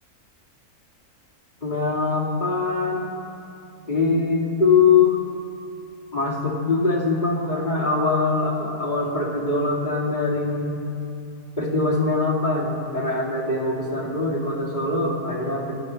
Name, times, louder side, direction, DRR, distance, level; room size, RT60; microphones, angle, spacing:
voice 1, 1.6-3.3 3.9-5.2 6.1-10.8 11.6-15.8, left 4 dB, 30° left, -5 dB, 2.8 m, -22 dB
26.5 x 13.0 x 3.3 m, 2.7 s
omnidirectional pair, 1.5 m